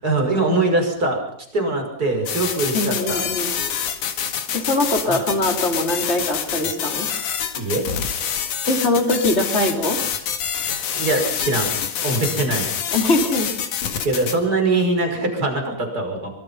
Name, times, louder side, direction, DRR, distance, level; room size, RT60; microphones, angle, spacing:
voice 1, 0.0-1.2 1.5-3.2 5.0-5.2 7.5-7.8 10.9-11.7 12.0-12.6 14.0-16.3, right 2 dB, 25° right, 3 dB, 6.1 m, -22 dB
sound 1, 2.3-14.4, left 8 dB, 65° left, 3.3 m, -26 dB
voice 2, 2.7-3.5 4.5-7.1 8.7-10.0 12.9-13.5, left 1 dB, 20° left, 3 dB, 3.6 m, -22 dB
26.0 x 23.5 x 5.8 m, 0.67 s
omnidirectional pair, 3.9 m